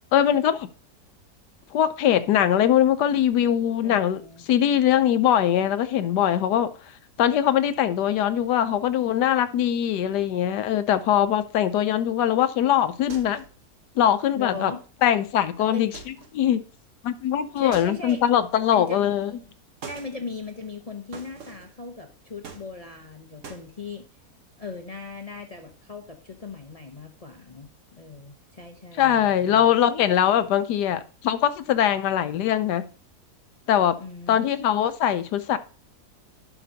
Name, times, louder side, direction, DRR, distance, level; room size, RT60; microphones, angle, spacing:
voice 1, 0.1-0.7 1.7-4.2 4.5-6.7 7.2-13.4 14.0-14.7 15.0-15.9 16.3-16.6 17.0-19.3 29.0-32.8 33.7-33.9 34.3-35.6, left 10 dB, 80° left, 1.2 m, -22 dB
voice 2, 3.8-4.5 14.3-14.8 15.7-15.8 17.6-18.2 18.7-19.4 19.9-24.1 24.6-29.7 34.0-34.5, left 4 dB, 40° left, 0.5 m, -38 dB
sound 1, 13.1-13.6 15.9-16.4 17.7-18.5 19.8-20.1 21.1-21.7 22.4-23.1 23.4-23.7, right 5 dB, 50° right, 1.3 m, -43 dB
11.0 x 6.0 x 2.7 m
omnidirectional pair, 1.8 m